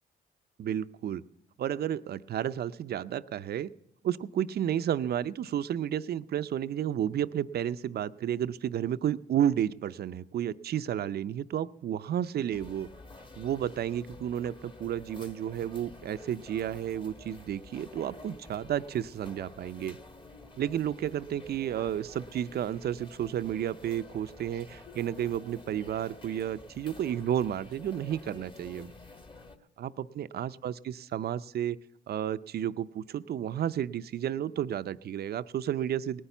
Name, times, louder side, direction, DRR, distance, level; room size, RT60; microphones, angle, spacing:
voice 1, 0.6-1.2 1.6-3.7 4.0-12.9 13.4-20.0 20.6-28.9 29.8-31.8 32.1-36.2, right 10 dB, 55° right, 14 dB, 0.5 m, -32 dB
sound 1, 12.5-29.6, left 2 dB, 25° left, 1.4 m, -50 dB
18.0 x 10.0 x 7.0 m, 0.83 s
cardioid pair, 90°, 20 cm